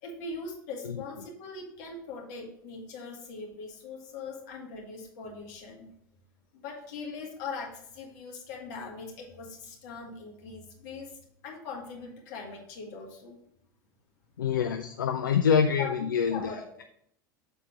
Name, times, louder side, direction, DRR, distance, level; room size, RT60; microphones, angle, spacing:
voice 1, 0.0-5.9 6.5-11.2 11.4-13.4 15.8-15.9 16.2-16.7, left 4 dB, 55° left, -1 dB, 2.0 m, -41 dB
voice 2, 14.4-16.5, left 7 dB, 75° left, 7 dB, 0.4 m, -25 dB
6.9 x 4.2 x 5.0 m, 0.70 s
figure-of-eight pair, 75°, 11 cm